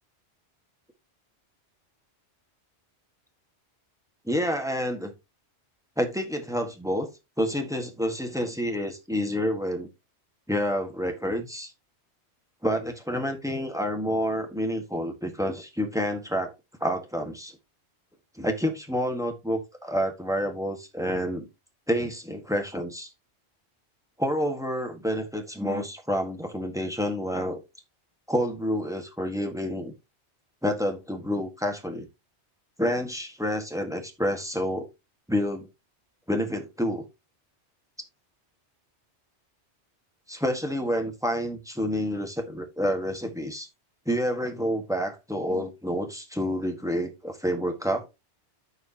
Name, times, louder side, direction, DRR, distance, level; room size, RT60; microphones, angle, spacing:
voice 1, 4.2-5.1 6.0-7.1 7.4-9.9 10.5-11.7 12.6-16.5 16.8-17.6 18.4-21.5 21.9-23.1 24.2-27.6 28.3-29.9 30.6-32.1 32.8-34.9 35.3-35.7 36.3-37.0 40.3-43.7 44.0-48.1, equal, 5° right, 1.5 m, -28 dB
13.5 x 4.8 x 2.9 m
omnidirectional pair, 1.2 m